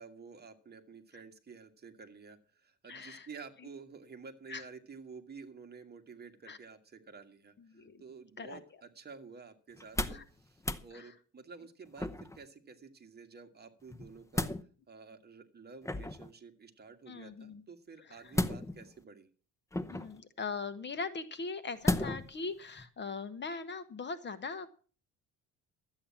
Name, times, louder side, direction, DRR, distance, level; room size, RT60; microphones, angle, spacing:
voice 1, 0.0-14.5 14.9-19.3, right 5 dB, 30° right, 6 dB, 1.9 m, -51 dB
voice 2, 2.9-3.3 4.5-4.6 6.5-6.6 7.7-8.0 8.4-8.6 10.1-10.2 10.9-11.1 17.1-17.6 18.0-18.3 19.9-24.8, left 4 dB, 35° left, 12 dB, 1.2 m, -41 dB
sound 1, 9.8-10.3 10.6-10.9 12.0-12.4 13.9-14.6 15.8-16.3 18.3-19.0 19.7-20.2 21.8-22.3 22.8-22.9, left 2 dB, 10° left, 0.8 m, -34 dB
13.0 x 8.7 x 7.2 m, 0.40 s
cardioid pair, 125°, 32 cm